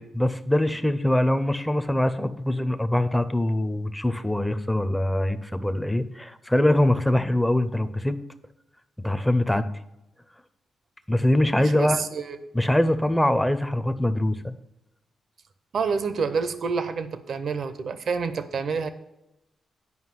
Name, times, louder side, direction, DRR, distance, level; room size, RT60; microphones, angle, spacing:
voice 1, 0.0-8.2 9.0-9.7 11.1-12.0 12.5-14.5, left 1 dB, 5° left, 10 dB, 0.5 m, -23 dB
voice 2, 11.6-12.5 15.7-18.9, right 5 dB, 55° right, 12 dB, 0.8 m, -28 dB
9.5 x 5.5 x 5.8 m, 0.90 s
wide cardioid pair, 145°, 0 cm